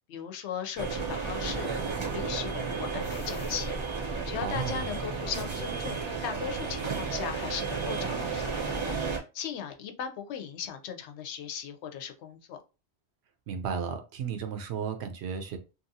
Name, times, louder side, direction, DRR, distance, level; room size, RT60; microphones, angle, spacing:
voice 1, 0.1-3.8 4.2-12.6, left 8 dB, 75° left, 0.8 m, -38 dB
sound 1, 0.8-9.2, right 5 dB, 30° right, 0.6 m, -33 dB
voice 2, 4.4-4.9 13.5-15.6, right 6 dB, 75° right, 0.8 m, -34 dB
2.8 x 2.4 x 2.7 m
omnidirectional pair, 1.2 m